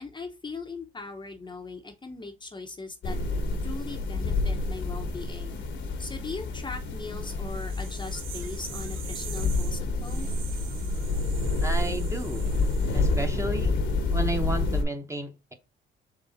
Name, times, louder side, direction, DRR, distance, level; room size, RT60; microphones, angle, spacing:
voice 1, 0.0-3.2 3.6-5.6 6.0-10.3, left 3 dB, 25° left, 0.8 m, -39 dB
sound 1, 3.0-14.8, left 3 dB, 70° left, 1.1 m, -28 dB
sound 2, 7.5-13.3, right 9 dB, 80° right, 0.7 m, -44 dB
voice 2, 11.6-12.5 12.9-13.8 14.1-15.5, right 2 dB, 15° right, 0.9 m, -32 dB
4.0 x 3.3 x 3.9 m
cardioid pair, 90°, 20 cm